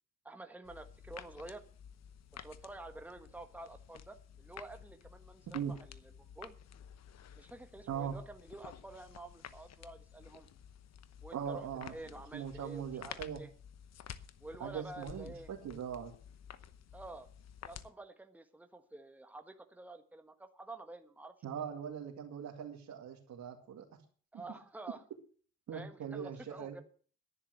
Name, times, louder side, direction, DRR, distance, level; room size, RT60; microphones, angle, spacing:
voice 1, 0.2-1.6 2.4-6.6 7.4-10.5 11.2-13.5 14.4-15.5 16.9-17.3 17.6-21.6 24.3-25.0 25.7-26.8, right 2 dB, 5° right, 7 dB, 1.4 m, -49 dB
sound 1, 0.6-17.9, left 9 dB, 60° left, 1.0 m, -53 dB
voice 2, 11.3-11.9 12.3-13.4 14.6-16.1 21.4-24.0 24.3-24.4 25.7-26.8, right 8 dB, 65° right, -1 dB, 2.4 m, -41 dB
11.0 x 10.0 x 6.6 m, 0.43 s
cardioid pair, 90°, 30 cm